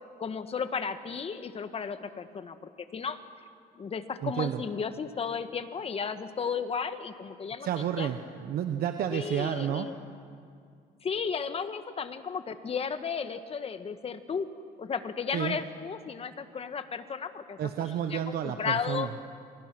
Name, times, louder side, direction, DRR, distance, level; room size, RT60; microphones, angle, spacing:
voice 1, 0.2-3.2 3.7-7.7 8.0-8.1 9.1-9.9 11.0-14.5 14.8-17.6 18.1-18.2 18.4-19.1, left 6 dB, 35° left, 10 dB, 1.5 m, -34 dB
voice 2, 4.2-4.6 7.6-9.9 15.3-15.6 17.6-19.1, right 9 dB, 65° right, 7 dB, 1.2 m, -31 dB
29.0 x 25.0 x 6.2 m, 2.3 s
cardioid pair, 110°, 17 cm